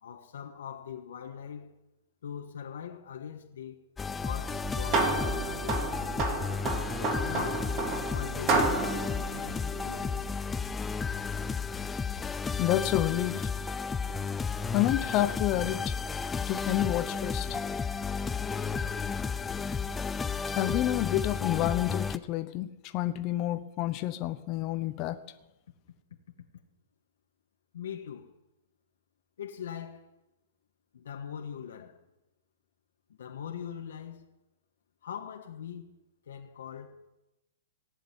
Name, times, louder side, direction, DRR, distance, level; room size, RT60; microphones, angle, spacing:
voice 1, 0.0-1.8 2.2-3.8 4.2-5.8 7.0-7.8 8.1-8.7 9.3-10.2 17.5-17.6 27.7-28.3 29.4-30.1 30.9-32.0 33.2-34.3 35.0-35.9 36.3-37.0, left 8 dB, 80° left, 1.4 m, -41 dB
sound 1, 4.0-22.2, left 5 dB, 10° left, 0.4 m, -33 dB
sound 2, 4.5-10.3, right 3 dB, 30° right, 2.2 m, -31 dB
voice 2, 12.6-13.5 14.7-15.8 16.5-17.5 20.5-25.2, left 14 dB, 30° left, 0.8 m, -29 dB
18.0 x 6.6 x 9.7 m
hypercardioid pair, 160°, 0 cm